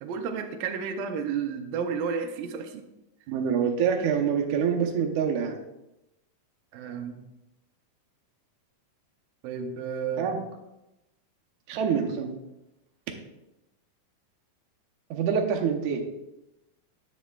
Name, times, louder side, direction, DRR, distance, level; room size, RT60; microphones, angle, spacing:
voice 1, 0.0-2.9 6.7-7.3 9.4-10.3, right 6 dB, 90° right, 5 dB, 2.4 m, -32 dB
voice 2, 3.3-5.6 10.2-10.4 11.7-12.4 15.1-16.0, right 7 dB, 70° right, 1 dB, 2.2 m, -26 dB
10.0 x 8.2 x 2.3 m, 0.93 s
omnidirectional pair, 3.8 m